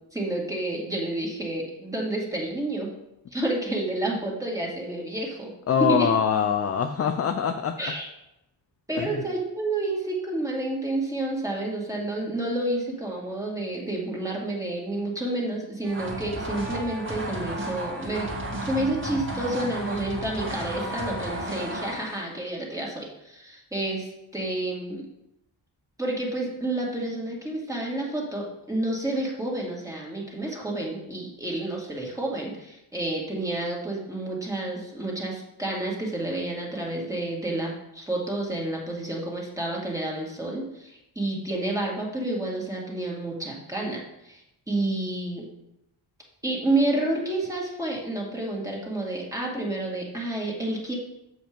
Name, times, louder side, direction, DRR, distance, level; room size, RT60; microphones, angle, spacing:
voice 1, 0.1-2.9 3.3-5.5 5.9-6.1 7.8-8.1 8.9-18.3 18.6-25.1 26.0-44.4 44.7-45.5 46.4-50.9, right 2 dB, 5° right, -3 dB, 2.2 m, -30 dB
voice 2, 5.7-7.7 9.0-9.2, left 7 dB, 35° left, 6 dB, 0.4 m, -24 dB
sound 1, 15.8-22.4, right 1 dB, 25° right, 1.8 m, -33 dB
7.6 x 5.1 x 5.1 m, 0.87 s
cardioid pair, 115°, 46 cm